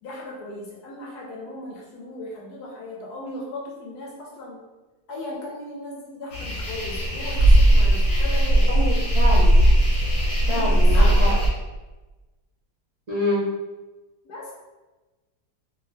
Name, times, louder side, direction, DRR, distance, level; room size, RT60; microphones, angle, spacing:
voice 1, 0.0-4.6 5.1-8.8 10.4-11.5 14.2-14.5, left 1 dB, 80° left, -3 dB, 1.2 m, -37 dB
sound 1, 6.3-11.5, right 1 dB, 50° left, 1.3 m, -18 dB
voice 2, 8.7-9.5 10.5-11.3 13.1-13.4, left 1 dB, 35° right, -11 dB, 0.7 m, -26 dB
2.9 x 2.7 x 3.1 m, 1.2 s
omnidirectional pair, 1.7 m